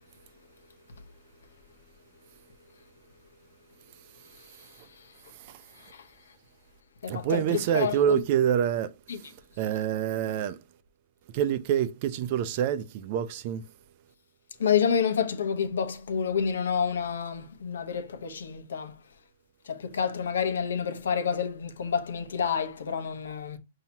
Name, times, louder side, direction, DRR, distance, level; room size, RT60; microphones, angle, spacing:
voice 1, 4.4-5.1 5.7-6.1 7.0-8.2 9.1-9.3 14.6-18.9 19.6-23.6, left 7 dB, 85° left, 0.9 m, -29 dB
voice 2, 7.1-8.9 9.6-10.6 11.3-13.6, right 9 dB, 40° right, 0.5 m, -26 dB
5.7 x 2.8 x 2.8 m
hypercardioid pair, 155°, 0 cm